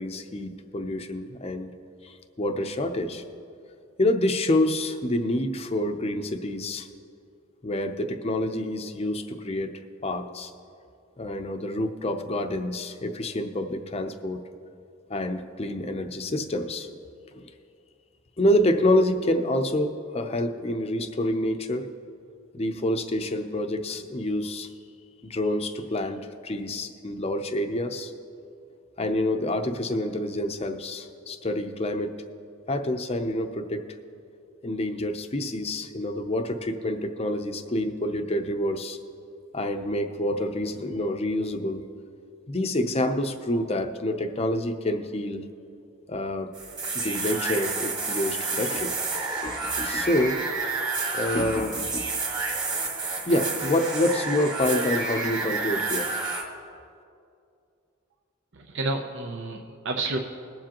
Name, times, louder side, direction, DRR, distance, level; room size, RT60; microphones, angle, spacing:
voice 1, 0.0-1.7 2.0-3.2 4.0-6.9 7.6-9.7 10.0-10.5 11.2-14.4 15.1-16.9 17.3-17.5 18.4-21.9 22.5-24.7 25.2-28.1 29.0-32.1 32.7-33.8 34.6-39.0 39.5-41.8 42.5-45.4 46.1-46.5 46.9-48.9 49.4-50.4 51.1-52.1 53.3-56.2, left 1 dB, 30° left, 6 dB, 0.6 m, -27 dB
sound 1, 46.5-56.4, right 3 dB, 20° right, 1.6 m, -30 dB
voice 2, 58.5-60.2, right 2 dB, 60° right, 2 dB, 0.7 m, -30 dB
21.5 x 7.5 x 3.0 m, 2.5 s
head